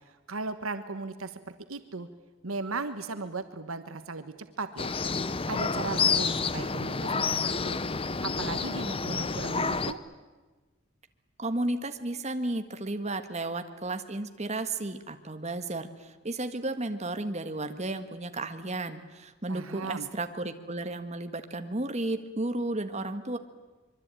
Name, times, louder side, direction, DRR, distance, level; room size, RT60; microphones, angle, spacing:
voice 1, 0.0-2.1 2.4-4.9 5.5-7.8 8.2-10.0 19.5-20.1, right 3 dB, 85° right, 9 dB, 1.3 m, -37 dB
sound 1, 4.8-9.9, left 4 dB, 25° left, 0.8 m, -29 dB
voice 2, 11.4-23.4, right 2 dB, 35° right, 8 dB, 1.6 m, -33 dB
25.0 x 23.0 x 9.1 m, 1.3 s
head